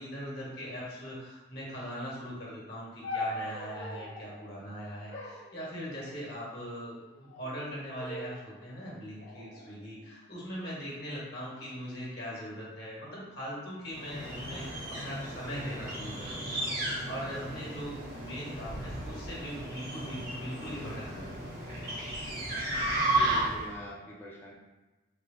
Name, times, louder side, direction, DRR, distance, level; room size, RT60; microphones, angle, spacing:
voice 1, 0.0-21.6, equal, 55° left, -6 dB, 1.3 m, -41 dB
sound 1, 3.0-4.3 5.1-6.3 7.1-7.6 7.9-8.5 9.2-10.5 11.3-11.7, left 2 dB, 90° left, 0.9 m, -41 dB
sound 2, 13.9-23.7, right 1 dB, 50° right, 1.0 m, -34 dB
voice 2, 23.0-24.5, equal, 10° left, -5 dB, 0.6 m, -44 dB
3.1 x 2.8 x 3.7 m, 1.1 s
head